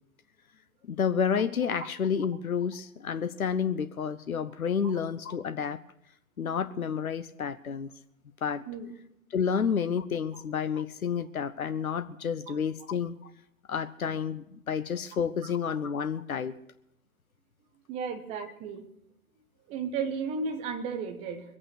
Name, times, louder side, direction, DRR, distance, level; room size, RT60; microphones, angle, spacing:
voice 1, 0.9-5.8 6.4-7.9 8.4-8.7 9.3-13.3 13.7-16.6, left 7 dB, 70° left, 12 dB, 0.9 m, -30 dB
voice 2, 17.9-18.9 19.7-21.4, right 5 dB, 15° right, 5 dB, 1.1 m, -34 dB
22.0 x 8.8 x 6.5 m, 0.79 s
figure-of-eight pair, 130°, 44 cm